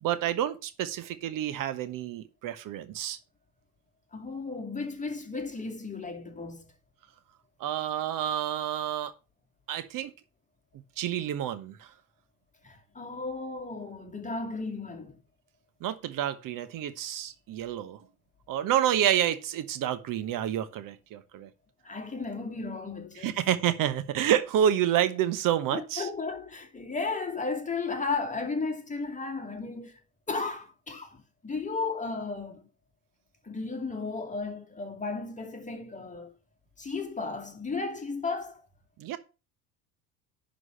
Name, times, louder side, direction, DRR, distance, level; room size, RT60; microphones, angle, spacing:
voice 1, 0.0-3.2 7.6-9.1 9.7-10.1 11.0-11.9 15.8-18.0 18.5-21.5 23.2-26.1 39.0-39.2, right 10 dB, 45° right, 1.2 m, -29 dB
voice 2, 4.1-6.6 12.6-15.2 21.8-23.4 25.7-30.0 30.3-32.7 33.4-36.3 36.8-38.7, left 4 dB, 15° left, 2.3 m, -34 dB
11.0 x 4.1 x 6.5 m
hypercardioid pair, 70°, 45 cm